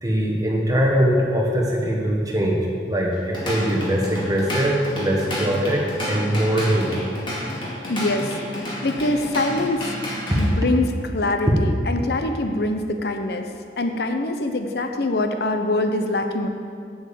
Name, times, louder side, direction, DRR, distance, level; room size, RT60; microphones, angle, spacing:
voice 1, 0.0-7.0 10.3-10.4 11.5-11.6, equal, 20° right, -2 dB, 1.5 m, -22 dB
Drum kit / Drum, 3.1-10.5, left 1 dB, 30° left, 2.1 m, -30 dB
voice 2, 7.9-9.9 10.4-13.5 13.8-16.5, left 2 dB, 65° left, 6 dB, 0.7 m, -24 dB
7.7 x 7.1 x 7.5 m, 2.3 s
head